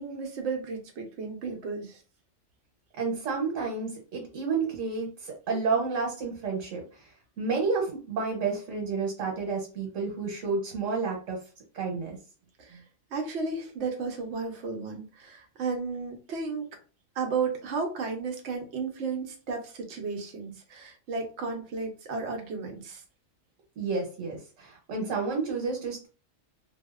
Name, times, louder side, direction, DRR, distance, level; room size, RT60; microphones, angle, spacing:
voice 1, 0.0-2.0 12.6-12.8 13.1-16.6 17.2-23.0, right 4 dB, 70° right, 3 dB, 0.8 m, -33 dB
voice 2, 3.0-7.1 7.4-11.4 11.7-12.2 23.8-26.1, right 4 dB, 85° right, 1 dB, 1.1 m, -30 dB
2.7 x 2.0 x 2.3 m, 0.36 s
omnidirectional pair, 1.3 m